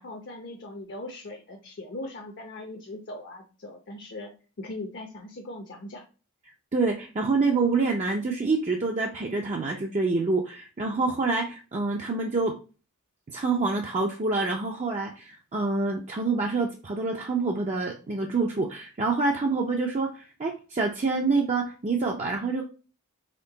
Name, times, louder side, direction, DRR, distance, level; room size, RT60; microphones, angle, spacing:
voice 1, 0.0-4.3 4.6-6.0, left 2 dB, 50° left, 2 dB, 0.7 m, -39 dB
voice 2, 6.7-12.6 13.3-22.6, right 3 dB, 30° right, 0 dB, 0.5 m, -27 dB
4.4 x 2.9 x 3.9 m, 0.35 s
head